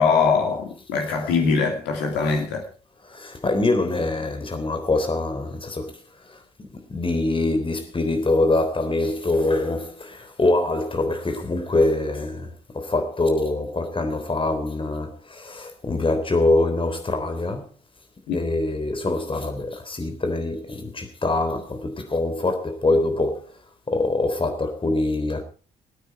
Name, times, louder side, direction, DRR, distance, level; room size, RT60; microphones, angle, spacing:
voice 1, 0.0-2.7 18.3-18.4, left 5 dB, 65° left, 2.9 m, -22 dB
voice 2, 3.1-17.7 18.3-23.5 23.9-25.4, left 2 dB, 30° left, 3.6 m, -24 dB
22.0 x 9.2 x 4.6 m
figure-of-eight pair, 40°, 19 cm